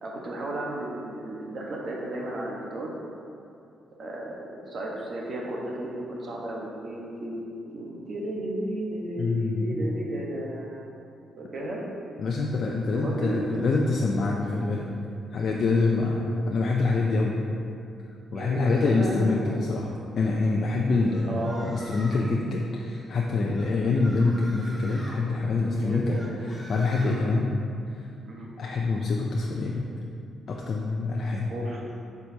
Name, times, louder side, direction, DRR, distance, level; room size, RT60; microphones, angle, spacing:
voice 1, 0.0-2.9 4.0-10.9 11.4-11.8 12.9-13.8 14.2-14.4 18.3-19.5 21.3-21.7 25.4-26.4 28.3-28.5 31.5-31.8, right 1 dB, 55° right, -3 dB, 1.2 m, -34 dB
voice 2, 9.2-9.8 12.2-14.9 15.3-17.4 18.3-19.9 20.2-26.2 26.5-27.5 27.9-28.1 28.6-29.9 30.5-31.5, left 3 dB, 55° left, -1 dB, 0.5 m, -25 dB
sound 1, 21.1-22.3 23.5-25.2 26.1-27.2, equal, 10° left, 1.3 m, -45 dB
8.5 x 4.8 x 2.8 m, 2.5 s
cardioid pair, 85°, 0 cm